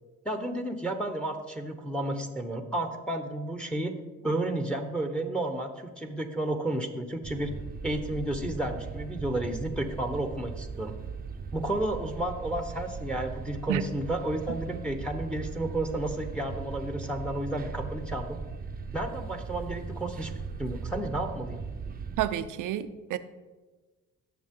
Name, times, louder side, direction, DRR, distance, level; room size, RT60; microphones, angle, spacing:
voice 1, 0.2-3.9 4.2-7.5 7.8-10.9 11.5-18.4 18.9-20.3 20.6-21.6, right 1 dB, 5° left, 6 dB, 1.1 m, -32 dB
sound 1, 7.2-22.3, right 5 dB, 30° right, 0.7 m, -39 dB
voice 2, 22.2-23.2, right 11 dB, 85° right, 12 dB, 0.7 m, -30 dB
17.5 x 6.5 x 3.8 m, 1.3 s
cardioid pair, 90°, 30 cm